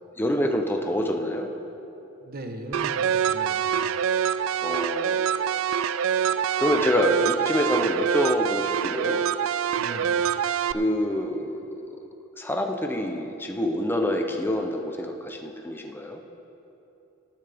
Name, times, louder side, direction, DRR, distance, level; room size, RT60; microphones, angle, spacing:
voice 1, 0.2-1.5 4.6-5.3 6.6-9.3 10.7-11.6 12.4-16.2, left 1 dB, 10° left, 3 dB, 0.7 m, -26 dB
voice 2, 2.2-3.8 9.8-10.2, right 1 dB, 50° right, 4 dB, 1.1 m, -39 dB
sound 1, 2.7-10.7, right 8 dB, 70° right, 0.3 m, -25 dB
18.5 x 10.0 x 3.5 m, 3.0 s
head